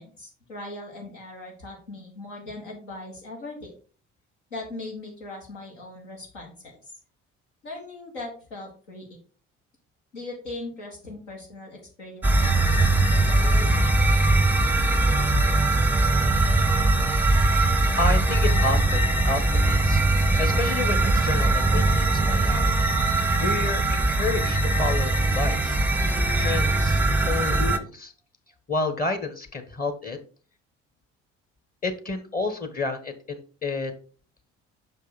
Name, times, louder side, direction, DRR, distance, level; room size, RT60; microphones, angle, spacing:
voice 1, 0.0-3.7 4.5-6.9 7.6-9.2 10.1-13.8, left 2 dB, 75° left, -2 dB, 1.6 m, -39 dB
sound 1, 12.2-27.8, right 2 dB, 5° right, 0.6 m, -21 dB
voice 2, 18.0-20.0 20.4-22.7 23.4-25.8 26.3-27.0 27.3-28.1 28.7-30.2 31.8-33.9, left 3 dB, 25° left, 8 dB, 1.1 m, -30 dB
6.0 x 5.4 x 4.0 m, 0.38 s
figure-of-eight pair, 50°, 36 cm